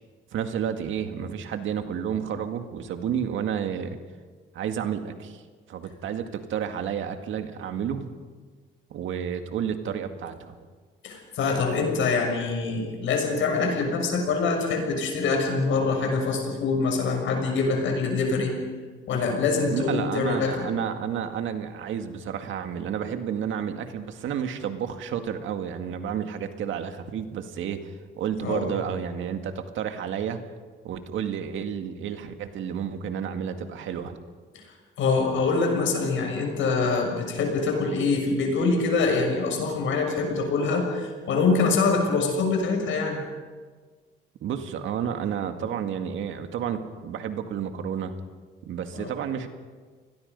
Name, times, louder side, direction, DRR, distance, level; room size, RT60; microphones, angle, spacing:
voice 1, 0.3-3.9 4.5-5.4 5.7-8.1 8.9-10.5 19.7-30.4 30.8-34.2 44.4-48.1 48.6-49.5, right 8 dB, 80° right, 7 dB, 2.0 m, -31 dB
voice 2, 11.0-18.5 19.1-20.7 28.4-28.7 35.0-43.2 48.9-49.1, left 4 dB, 75° left, 3 dB, 6.5 m, -24 dB
29.5 x 20.5 x 5.4 m, 1.5 s
cardioid pair, 90°, 20 cm